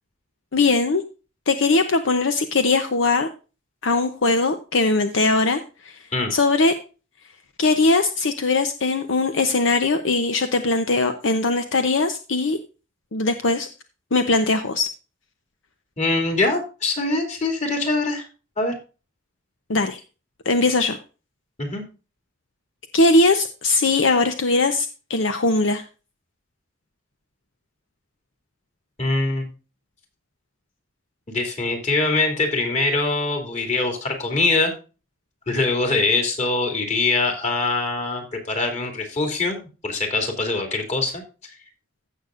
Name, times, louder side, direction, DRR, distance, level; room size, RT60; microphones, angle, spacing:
voice 1, 0.5-1.0 1.5-3.3 3.8-6.0 6.3-6.7 7.6-12.6 13.1-13.7 14.1-14.9 19.7-20.0 20.5-21.0 22.9-25.8, left 3 dB, 70° left, 8 dB, 0.8 m, -20 dB
voice 2, 16.0-18.3 18.6-18.7 21.6-21.8 29.0-29.5 31.3-34.7 35.5-41.5, left 3 dB, 35° left, 3 dB, 2.7 m, -23 dB
15.5 x 6.5 x 2.5 m, 0.33 s
head